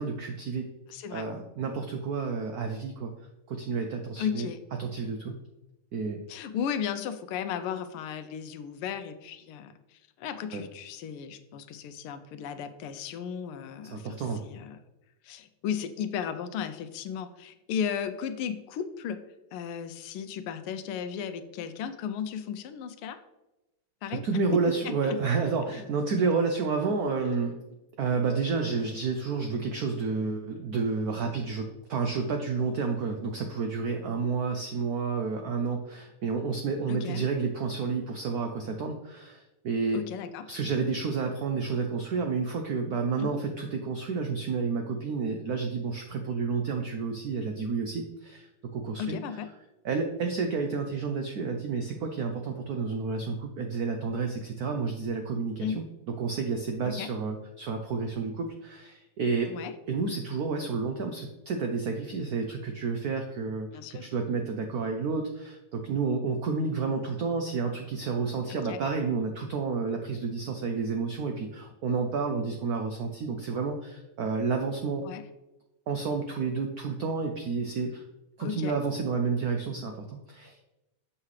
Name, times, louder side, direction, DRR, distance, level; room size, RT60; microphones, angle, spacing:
voice 1, 0.0-0.7 1.1-3.1 3.5-4.5 4.8-5.3 5.9-6.2 10.5-10.6 13.9-14.4 24.1-27.6 28.0-40.0 40.5-48.5 48.7-49.2 49.8-59.5 59.9-63.7 64.0-75.1 75.9-78.0 78.4-80.6, right 4 dB, 85° right, 4 dB, 0.8 m, -30 dB
voice 2, 0.9-1.3 4.2-4.6 6.3-14.8 15.2-19.2 19.5-23.2 24.0-24.2 24.5-24.7 25.0-25.2 25.7-25.8 36.9-37.2 39.9-40.4 43.2-43.4 49.0-49.5 55.6-55.8 56.8-57.1 59.5-59.7 63.7-64.1 68.5-68.8 75.0-75.3 78.4-78.8, left 8 dB, 85° left, 10 dB, 1.5 m, -35 dB
7.6 x 5.6 x 3.2 m, 0.98 s
omnidirectional pair, 2.3 m